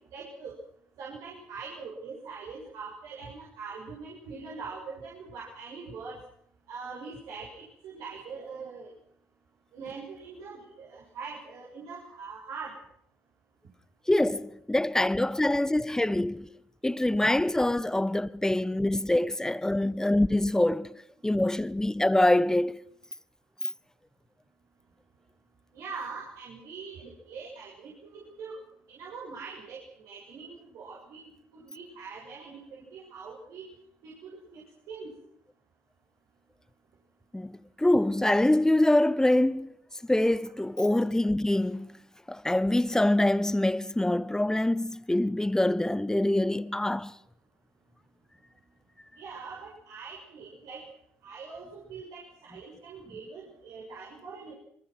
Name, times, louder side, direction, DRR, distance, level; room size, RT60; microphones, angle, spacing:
voice 1, 0.1-0.5 1.0-6.2 6.7-8.9 9.7-12.8 25.7-28.6 28.9-33.6 34.0-34.6 34.9-35.1 49.2-50.8 51.2-54.6, right 5 dB, 70° right, 7.3 m, -42 dB
voice 2, 14.1-16.5 16.8-21.0 21.2-22.8 37.3-39.7 40.0-42.0 42.3-47.1, left 1 dB, 10° left, 1.4 m, -25 dB
26.0 x 24.0 x 6.3 m
hypercardioid pair, 55°, 6 cm